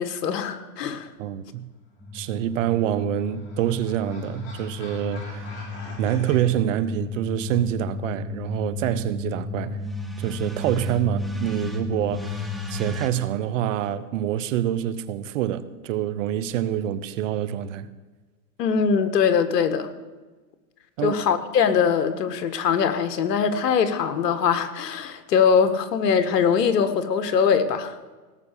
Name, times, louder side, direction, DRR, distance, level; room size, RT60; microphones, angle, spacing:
voice 1, 0.0-1.1 18.6-19.9 21.0-28.0, left 6 dB, 70° left, 1.7 m, -22 dB
voice 2, 1.2-1.7 2.1-5.5 6.0-9.8 10.2-17.9 21.0-21.2, right 11 dB, 50° right, 1.0 m, -26 dB
sound 1, 2.0-13.1, left 3 dB, ahead, 1.2 m, -33 dB
sound 2, 2.5-6.4, left 2 dB, 45° left, 5.8 m, -44 dB
18.0 x 6.7 x 8.2 m
hypercardioid pair, 130°, 49 cm